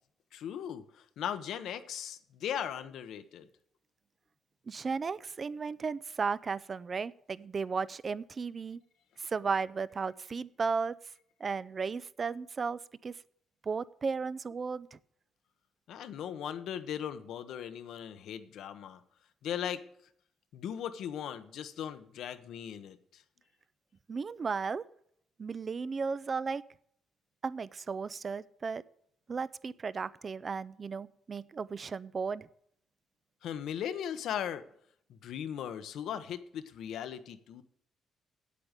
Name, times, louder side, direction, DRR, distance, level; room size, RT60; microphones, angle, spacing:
voice 1, 0.3-3.5 15.9-19.0 19.4-19.8 20.5-23.2 33.4-34.7 35.1-37.6, left 9 dB, 75° left, 11 dB, 0.9 m, -38 dB
voice 2, 4.7-8.8 9.2-11.0 11.4-13.2 13.6-15.0 24.1-24.8 25.4-26.6 27.4-28.8 29.3-32.5, right 5 dB, 40° right, 19 dB, 0.5 m, -35 dB
8.8 x 8.4 x 8.0 m, 0.68 s
cardioid pair, 90°, 0 cm